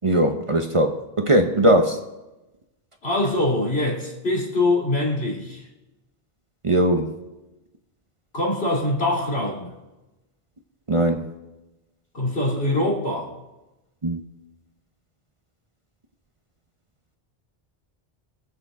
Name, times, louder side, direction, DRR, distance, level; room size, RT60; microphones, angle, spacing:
voice 1, 0.0-2.0 6.6-7.2 10.9-11.3 14.0-14.2, right 1 dB, 35° right, 5 dB, 0.8 m, -20 dB
voice 2, 3.0-5.6 8.3-9.7 12.1-13.4, left 2 dB, 75° left, -2 dB, 2.8 m, -23 dB
22.5 x 7.9 x 3.7 m, 1.0 s
omnidirectional pair, 1.0 m